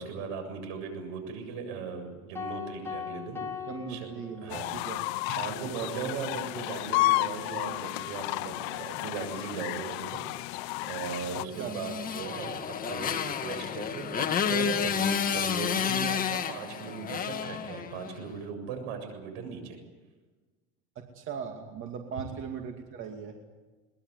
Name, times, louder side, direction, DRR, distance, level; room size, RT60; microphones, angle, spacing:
voice 1, 0.0-3.4 3.9-4.8 5.3-19.8, right 5 dB, 75° right, 7 dB, 7.5 m, -38 dB
sound 1, 2.3-4.8, left 7 dB, 10° left, 3.7 m, -39 dB
voice 2, 3.7-5.0 11.6-11.8 21.0-23.4, right 6 dB, 40° right, 3 dB, 2.5 m, -39 dB
sound 2, 4.5-11.4, left 20 dB, 75° left, 0.8 m, -32 dB
Motorcycle, 11.5-18.2, left 7 dB, 25° left, 1.5 m, -30 dB
22.5 x 21.0 x 9.7 m, 1.3 s
cardioid pair, 145°, 32 cm